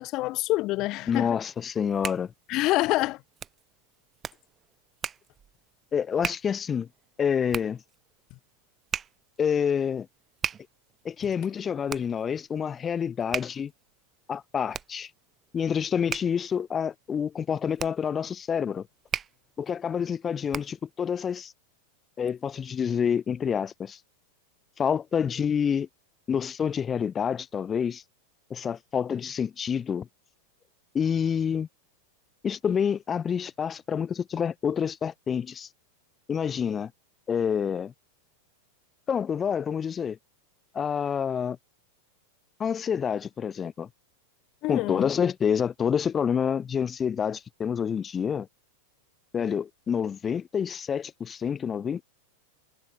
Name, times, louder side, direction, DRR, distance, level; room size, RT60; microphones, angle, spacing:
voice 1, 0.0-1.4 2.5-3.2 8.3-8.4 44.6-45.1, left 19 dB, 40° left, 2.2 m, -27 dB
voice 2, 1.1-2.3 5.9-6.9 7.2-7.8 9.4-10.1 11.0-13.7 14.3-15.1 15.5-18.9 19.6-21.5 22.2-24.0 24.8-25.9 26.3-28.0 28.5-30.1 30.9-31.7 32.4-35.7 36.3-36.9 37.3-37.9 39.1-40.2 40.7-41.6 42.6-43.9 44.7-48.5 49.3-52.0, left 7 dB, 20° left, 2.0 m, -28 dB
Hands, 1.6-20.9, right 8 dB, 25° right, 2.4 m, -39 dB
figure-of-eight pair, 90°, 0 cm